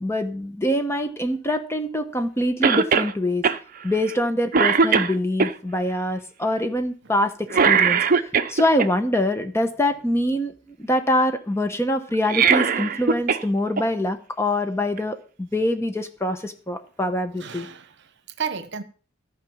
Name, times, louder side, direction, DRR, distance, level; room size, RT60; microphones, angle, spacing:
voice 1, 0.0-3.5 3.8-17.7, left 1 dB, 15° left, 0.9 m, -24 dB
Cough, 2.6-3.1 3.4-3.6 4.1-4.2 4.5-5.5 7.5-8.9 12.1-13.4 13.8-13.9 15.0-15.1, right 5 dB, 45° right, 0.7 m, -19 dB
voice 2, 17.4-18.8, right 6 dB, 60° right, 1.0 m, -33 dB
14.0 x 5.0 x 7.1 m
head